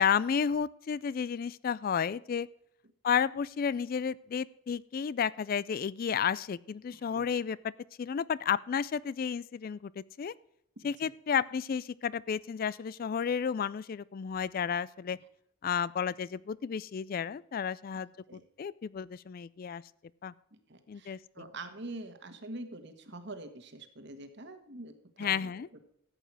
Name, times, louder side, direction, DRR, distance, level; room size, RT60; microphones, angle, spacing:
voice 1, 0.0-2.5 3.0-7.7 8.0-10.3 10.8-15.2 15.6-18.1 18.6-19.8 20.2-20.3 20.9-21.2 25.2-25.7, left 7 dB, 45° left, 21 dB, 0.3 m, -32 dB
voice 2, 6.9-7.3 10.8-11.1 18.3-18.4 20.5-25.8, right 2 dB, 55° right, 8 dB, 1.6 m, -45 dB
14.0 x 7.9 x 4.7 m, 0.75 s
head